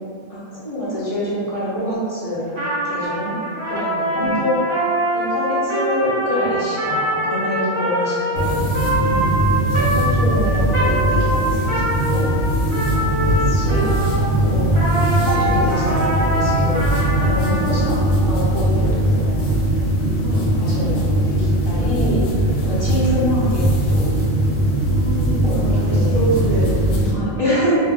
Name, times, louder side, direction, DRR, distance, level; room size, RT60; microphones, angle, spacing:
voice 1, 0.3-2.5 2.8-3.3 3.7-4.6 5.1-8.5 9.5-12.3 13.0-13.8 14.2-14.9 15.2-19.5 20.3-22.3 22.6-24.1 25.4-26.4 27.1-27.8, left 1 dB, 35° left, -11 dB, 0.7 m, -26 dB
Trumpet, 2.5-14.2 14.7-17.7, right 1 dB, 30° right, 0.8 m, -24 dB
sound 1, 8.4-27.1, right 1 dB, 85° left, 0.9 m, -19 dB
voice 2, 14.2-14.9 15.3-16.2 17.4-17.6 20.2-20.5 22.8-22.9 24.9-27.1, right 2 dB, 70° right, -5 dB, 0.9 m, -27 dB
sound 2, 15.3-19.2, left 1 dB, 55° right, 0.4 m, -29 dB
2.3 x 2.2 x 3.3 m, 2.4 s
omnidirectional pair, 1.3 m